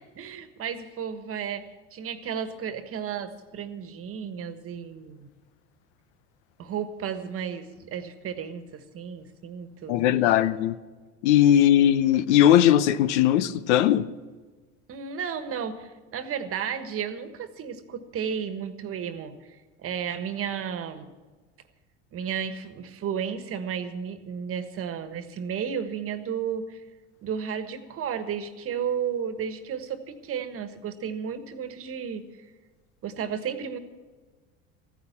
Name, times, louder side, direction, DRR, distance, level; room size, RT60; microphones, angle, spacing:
voice 1, 0.1-1.6 1.9-5.3 6.6-10.3 14.9-21.1 22.1-26.8 27.2-32.2 33.0-33.8, right 7 dB, 40° right, 1.4 m, -33 dB
voice 2, 9.9-10.8 11.2-14.1, left 11 dB, 75° left, 0.8 m, -19 dB
15.0 x 10.0 x 7.1 m
supercardioid pair, 100°, 34 cm